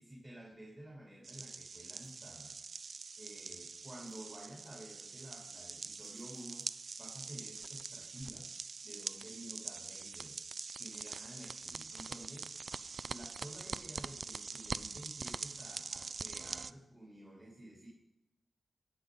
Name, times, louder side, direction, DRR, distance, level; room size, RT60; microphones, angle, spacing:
voice 1, 0.0-2.6 3.2-6.7 7.0-8.5 8.8-10.4 10.7-12.5 13.1-17.9, right 1 dB, 30° right, -4 dB, 2.9 m, -52 dB
sound 1, 1.2-16.7, right 4 dB, 60° right, 0.3 m, -44 dB
sound 2, 2.0-2.3 4.1-4.4 6.0-6.9, right 1 dB, 85° right, 4.9 m, -76 dB
16.5 x 7.1 x 3.9 m, 0.85 s
wide cardioid pair, 85°, 0 cm